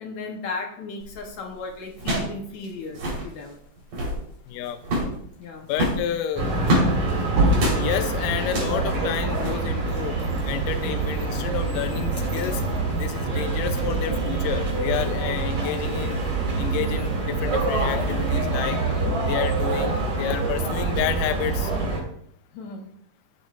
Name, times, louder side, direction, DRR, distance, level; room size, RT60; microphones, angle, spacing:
voice 1, 0.0-3.6 5.4-5.7 22.5-22.9, left 3 dB, 70° left, 2 dB, 2.0 m, -35 dB
sound 1, 1.0-1.3 2.0-2.4 2.6-2.7 2.9-3.3 3.8-4.2 4.8-5.2 5.7-6.9 7.5-7.8 8.4-8.8 9.3-9.5, right 1 dB, 80° right, 5.0 m, -25 dB
voice 2, 4.5-4.8 5.7-6.5 7.8-10.2 10.5-12.6 12.9-16.2 16.6-18.8 19.2-21.7, left 10 dB, 85° left, 9 dB, 2.3 m, -30 dB
sound 2, 6.4-22.0, right 3 dB, 60° right, 3.5 m, -25 dB
13.0 x 7.8 x 2.4 m, 0.69 s
omnidirectional pair, 3.9 m